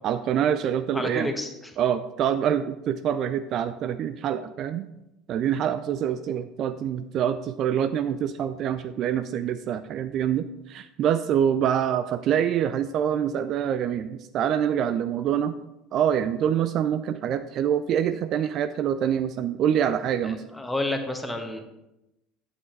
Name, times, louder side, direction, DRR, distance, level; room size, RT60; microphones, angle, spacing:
voice 1, 0.0-1.3 1.8-4.9 5.3-15.5 15.9-20.4, right 9 dB, 45° right, 12 dB, 0.3 m, -25 dB
voice 2, 0.9-1.5 20.2-21.6, left 1 dB, 5° left, 5 dB, 1.2 m, -30 dB
8.4 x 8.0 x 3.3 m, 0.91 s
figure-of-eight pair, 65°, 0 cm